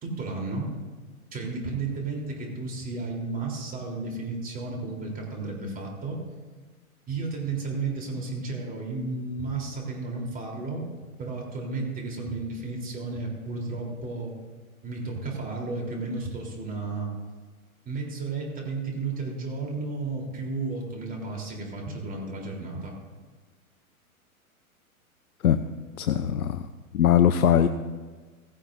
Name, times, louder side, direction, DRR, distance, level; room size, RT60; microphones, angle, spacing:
voice 1, 0.0-0.7 1.3-6.2 7.1-10.8 11.2-14.4 14.8-17.1 17.9-22.9, right 3 dB, 20° right, 0 dB, 3.6 m, -33 dB
voice 2, 26.0-26.6 26.9-27.7, left 9 dB, 80° left, 10 dB, 0.7 m, -20 dB
16.5 x 16.0 x 2.6 m, 1.4 s
hypercardioid pair, 115°, 43 cm